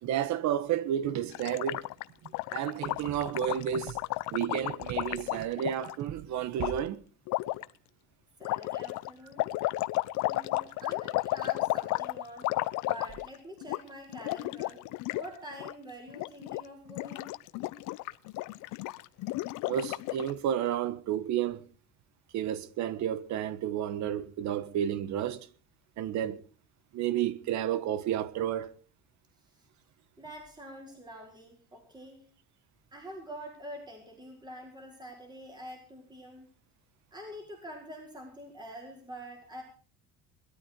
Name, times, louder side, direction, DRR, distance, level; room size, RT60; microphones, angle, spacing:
voice 1, 0.0-1.8 2.5-4.0 4.3-7.0 10.8-10.9 19.7-21.6 22.3-25.5 26.0-26.4 26.9-28.7, right 10 dB, 60° right, 1.5 m, -31 dB
Gurgling, 1.3-5.9 6.6-6.7 7.3-7.6 8.4-13.4 13.6-13.8 14.1-15.3 15.5-15.7 16.1-16.6 16.9-20.3, left 19 dB, 70° left, 0.9 m, -33 dB
voice 2, 8.4-9.5 10.1-12.5 12.8-14.8 15.1-17.3 29.6-29.7 30.2-32.2 32.9-36.5 37.1-39.6, equal, 15° right, 4.9 m, -46 dB
21.0 x 13.0 x 4.6 m
cardioid pair, 150°, 32 cm